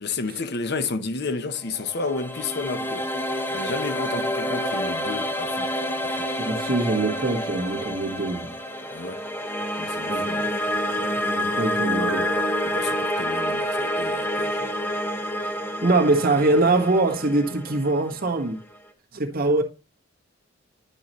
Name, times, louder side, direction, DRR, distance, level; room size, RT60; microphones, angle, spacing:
voice 1, 0.0-3.1 3.5-5.7 6.0-6.3 8.9-9.2 9.8-10.5 12.6-14.7, left 3 dB, 55° left, 0.8 m, -31 dB
sound 1, 1.6-18.7, equal, 10° left, 0.9 m, -28 dB
voice 2, 6.4-8.5 10.1-10.2 11.2-12.3 15.8-18.6 19.1-19.6, right 2 dB, 50° right, 1.6 m, -23 dB
Piano, 11.7-14.4 14.8-14.9, right 3 dB, 65° right, 1.0 m, -38 dB
11.0 x 5.7 x 3.1 m
head